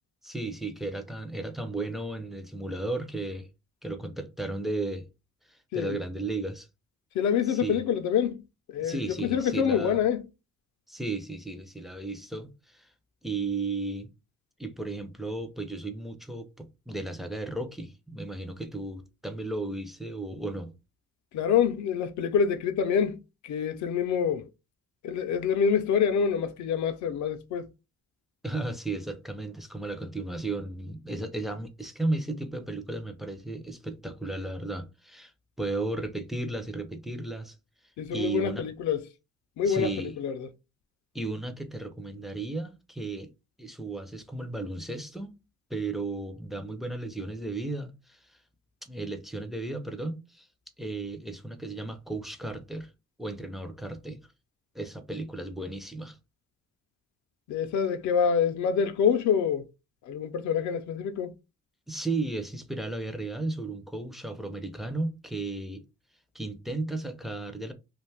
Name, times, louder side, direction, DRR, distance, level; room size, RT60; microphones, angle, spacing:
voice 1, 0.2-3.5 3.8-5.1 5.5-6.7 7.5-7.8 8.8-10.0 10.9-12.9 13.2-14.1 14.6-20.7 28.4-35.3 35.6-37.6 38.1-38.6 39.6-40.2 41.1-43.3 43.6-45.3 45.7-48.2 48.8-50.5 50.8-52.9 53.2-54.2 54.7-56.2 61.9-65.8 66.3-67.7, right 2 dB, ahead, 0.4 m, -34 dB
voice 2, 7.1-8.4 8.7-10.2 21.3-24.5 25.0-27.7 38.0-39.0 39.6-40.4 57.5-59.7 60.1-61.3, left 7 dB, 70° left, 0.5 m, -26 dB
2.5 x 2.2 x 3.2 m
cardioid pair, 90°, 30 cm